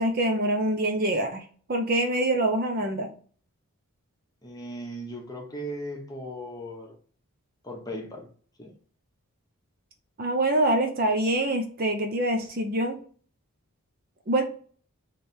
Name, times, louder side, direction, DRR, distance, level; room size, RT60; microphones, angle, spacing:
voice 1, 0.0-3.1 10.2-13.0 14.3-14.4, right 1 dB, 40° right, 0.7 m, -25 dB
voice 2, 4.4-6.9 7.6-8.3 8.6-8.7, equal, 15° left, 1.2 m, -37 dB
3.4 x 3.3 x 4.4 m
head